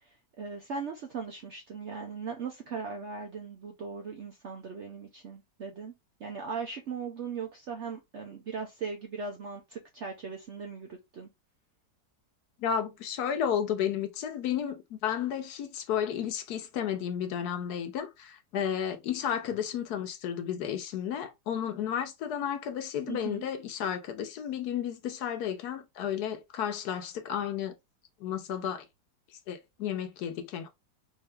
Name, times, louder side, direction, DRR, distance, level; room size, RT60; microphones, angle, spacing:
voice 1, 0.4-5.9 6.2-11.3 23.1-23.4, right 5 dB, 70° right, 0.6 m, -38 dB
voice 2, 12.6-27.7 28.2-28.9 29.5-30.7, left 9 dB, 70° left, 1.1 m, -32 dB
3.7 x 2.7 x 3.2 m
omnidirectional pair, 1.9 m